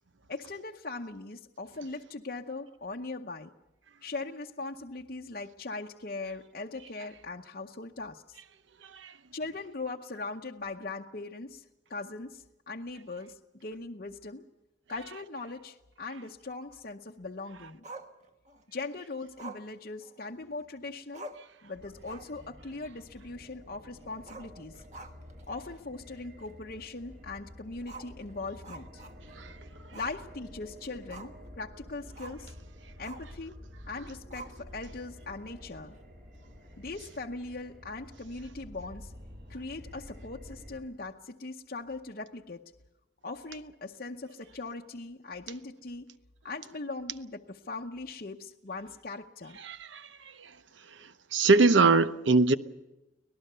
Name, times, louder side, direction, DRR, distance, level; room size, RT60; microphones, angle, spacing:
voice 1, 0.3-3.5 4.0-8.4 9.3-11.6 11.9-14.4 14.9-17.8 18.7-21.3 21.6-24.8 25.5-29.0 29.9-32.5 33.0-33.6 33.9-36.0 36.8-39.1 39.5-42.7 43.2-46.1 46.4-49.6, left 3 dB, 50° left, 0.8 m, -40 dB
Growling, 17.8-18.6 19.4-20.6 20.9-21.0 21.1-21.6 21.9-22.4 22.7-22.8 24.2-25.4 25.8-25.9 26.4-26.5 27.8-29.5 29.9-30.2 30.5-31.5 32.2-32.5 33.0-33.4 34.3-34.9, right 2 dB, 40° right, 1.4 m, -47 dB
sound 1, 21.7-40.8, equal, 55° right, 5.9 m, -50 dB
voice 2, 49.6-50.0 51.3-52.5, right 3 dB, 80° right, 0.9 m, -21 dB
25.0 x 19.0 x 6.8 m
head